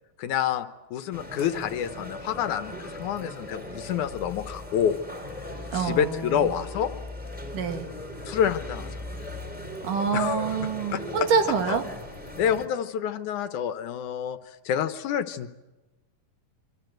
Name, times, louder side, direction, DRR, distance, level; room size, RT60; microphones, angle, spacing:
voice 1, 0.2-5.0 5.7-6.9 8.3-8.9 10.1-10.5 10.9-11.0 11.7-11.8 12.4-14.4 14.7-15.6, left 8 dB, 70° left, 10 dB, 2.3 m, -28 dB
sound 1, 1.1-12.7, left 1 dB, 5° right, 3.2 m, -39 dB
voice 2, 5.7-6.5 7.5-7.9 9.8-11.9, right 6 dB, 75° right, 5 dB, 3.8 m, -26 dB
26.0 x 25.5 x 7.9 m, 1.1 s
omnidirectional pair, 3.8 m